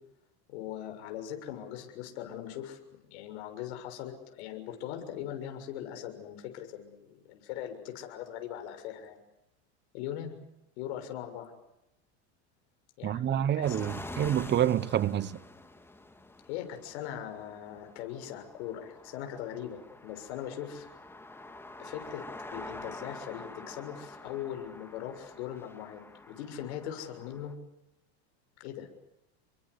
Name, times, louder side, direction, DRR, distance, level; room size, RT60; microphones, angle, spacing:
voice 1, 0.5-2.8 3.1-9.2 9.9-10.4 10.8-11.5 13.0-13.8 16.5-20.9 21.8-26.0 26.3-27.6 28.6-28.9, left 10 dB, 75° left, 6.8 m, -40 dB
voice 2, 13.0-15.3, right 11 dB, 30° right, 1.2 m, -27 dB
sound 1, 13.6-27.5, left 2 dB, 5° left, 2.5 m, -47 dB
29.5 x 23.5 x 8.3 m
supercardioid pair, 130°, 34 cm